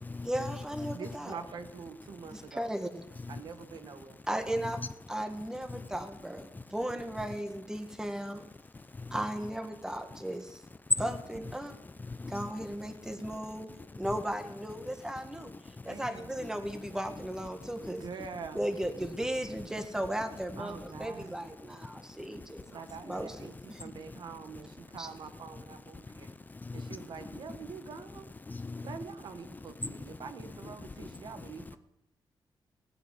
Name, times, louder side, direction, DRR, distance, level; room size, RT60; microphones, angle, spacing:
voice 1, 0.2-1.4 2.3-3.1 4.3-8.4 9.1-10.6 11.0-11.8 12.3-13.7 14.0-18.0 18.5-23.9 25.0-25.1, right 1 dB, 5° right, 1.8 m, -36 dB
voice 2, 0.9-2.7 3.3-4.2 15.9-16.3 17.9-18.7 20.6-21.6 22.7-26.3 26.7-28.3 28.8-31.8, right 6 dB, 65° right, 1.5 m, -45 dB
voice 3, 8.7-9.2 11.0-11.1 12.0-12.7 13.0-13.2 15.8-16.0 17.6-17.9 22.2-22.5 23.7-24.2 25.9-27.0 28.5-29.0 29.8-30.2 30.8-31.5, left 3 dB, 20° left, 0.6 m, -42 dB
17.5 x 9.0 x 8.4 m
wide cardioid pair, 120°, 8 cm